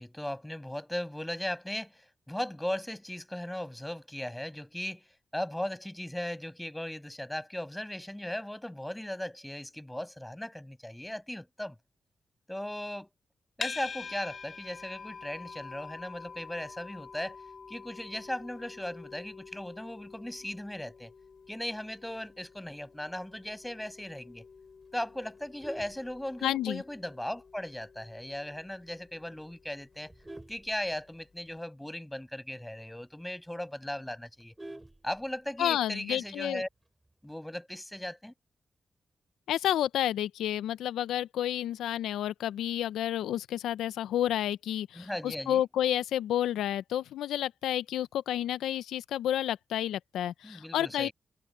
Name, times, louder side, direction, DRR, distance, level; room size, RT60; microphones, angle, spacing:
voice 1, 0.0-5.0 5.3-11.7 12.5-13.1 13.6-17.4 17.7-21.1 21.5-24.5 24.9-30.1 30.5-34.6 35.0-36.7 37.2-38.3 44.9-45.6 50.4-51.1, left 1 dB, 10° left, 6.8 m, -37 dB
sound 1, 13.6-30.8, left 5 dB, 55° left, 5.5 m, -47 dB
Vehicle horn car horn honking, 25.3-26.8 27.3-27.5 27.8-27.9 28.4-28.5 28.8-29.1 29.7-31.5 31.9-32.0 32.3-32.4 32.8-32.9 33.2-33.3 33.6-35.6 36.8-37.2, right 1 dB, 20° right, 4.8 m, -49 dB
voice 2, 26.4-26.8 35.6-36.6 39.5-51.1, left 11 dB, 85° left, 0.8 m, -30 dB
supercardioid pair, 40°, 0 cm